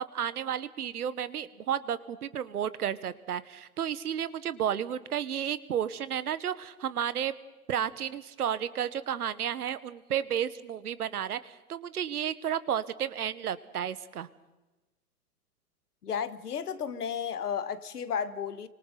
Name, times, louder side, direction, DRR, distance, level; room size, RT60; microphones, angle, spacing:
voice 1, 0.0-7.3 7.7-14.3, right 9 dB, 75° right, 1.4 m, -32 dB
voice 2, 16.0-18.7, left 7 dB, 80° left, 1.6 m, -33 dB
29.0 x 25.0 x 4.0 m
hypercardioid pair, 115°, 45 cm